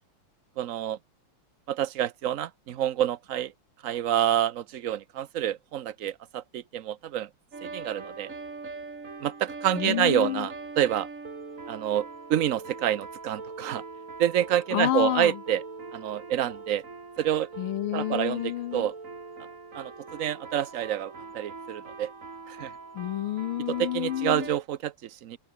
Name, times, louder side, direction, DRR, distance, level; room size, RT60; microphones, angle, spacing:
voice 1, 0.6-1.0 1.7-3.5 3.8-7.3 7.6-8.3 9.2-11.1 11.7-13.8 14.2-15.6 15.9-16.8 17.2-17.5 17.9-18.9 19.7-22.1 22.5-22.7 23.7-25.4, right 11 dB, 80° right, 0.7 m, -28 dB
sound 1, 7.5-24.6, right 4 dB, 35° right, 3.0 m, -42 dB
voice 2, 9.7-10.5 14.7-15.4 17.6-18.9 23.0-24.5, left 13 dB, 80° left, 1.6 m, -29 dB
open air
omnidirectional pair, 2.4 m